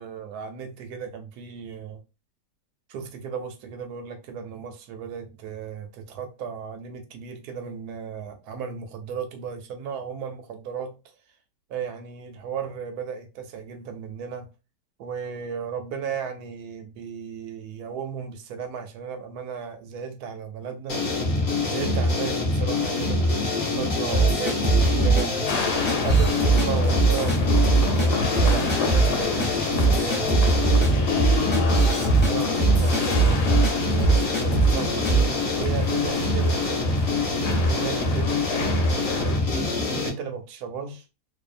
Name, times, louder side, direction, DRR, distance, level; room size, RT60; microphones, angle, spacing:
voice 1, 0.0-2.0 2.9-11.0 11.7-14.5 15.0-21.0 21.6-25.4 26.0-31.3 32.2-35.2 35.6-37.0 37.5-41.0, right 6 dB, 75° right, 1.0 m, -35 dB
sound 1, 20.9-40.1, left 2 dB, 45° left, 0.7 m, -25 dB
sound 2, 24.1-25.2 25.9-26.7 26.9-28.1 28.3-29.1 29.4-29.5 29.7-33.7 34.0-34.7 35.0-35.3, right 4 dB, 10° left, 0.6 m, -21 dB
sound 3, 25.5-39.4, left 5 dB, 85° left, 1.2 m, -31 dB
2.7 x 2.3 x 2.4 m
omnidirectional pair, 1.8 m